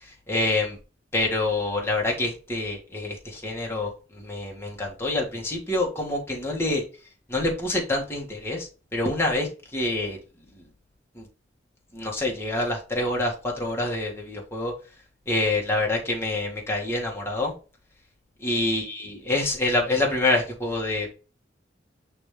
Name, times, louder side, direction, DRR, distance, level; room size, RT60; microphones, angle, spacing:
voice 1, 0.3-0.8 1.1-6.8 7.3-10.2 11.2-11.3 11.9-14.7 15.3-17.5 18.4-21.1, left 2 dB, 15° left, -2 dB, 1.7 m, -26 dB
8.5 x 3.5 x 3.4 m, 0.34 s
head